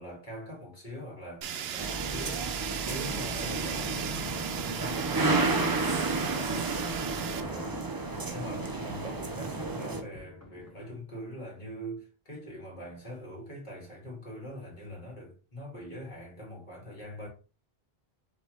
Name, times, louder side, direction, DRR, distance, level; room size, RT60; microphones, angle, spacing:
voice 1, 0.0-17.3, equal, 45° left, 2.1 m, -43 dB
Fire, 1.4-7.4, right 9 dB, 75° right, 0.8 m, -37 dB
sound 1, 1.8-10.0, right 3 dB, 30° right, 0.5 m, -31 dB
sound 2, 2.6-10.9, left 2 dB, 15° left, 1.1 m, -50 dB
5.0 x 3.4 x 3.0 m
omnidirectional pair, 1.1 m